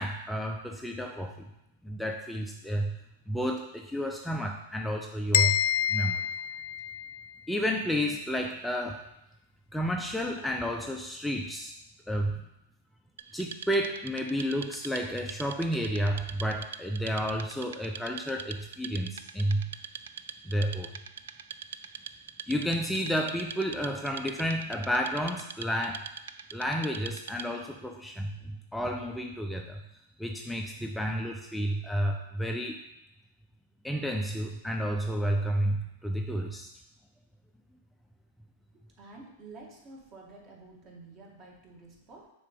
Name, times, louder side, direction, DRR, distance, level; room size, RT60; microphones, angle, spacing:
voice 1, 0.0-1.4 1.8-3.0 3.3-5.6 5.9-6.2 7.5-9.1 9.7-11.7 12.1-12.4 13.3-19.7 20.4-20.9 22.5-26.1 26.5-29.8 30.2-32.8 33.8-36.7, equal, 5° left, 2 dB, 0.5 m, -31 dB
sound 1, 5.3-7.3, left 10 dB, 70° left, 0.3 m, -28 dB
Wood, 13.2-27.7, right 8 dB, 80° right, 0.3 m, -44 dB
voice 2, 39.0-42.3, right 3 dB, 40° right, -1 dB, 1.9 m, -50 dB
6.5 x 3.9 x 5.2 m, 0.86 s
hypercardioid pair, 115°, 0 cm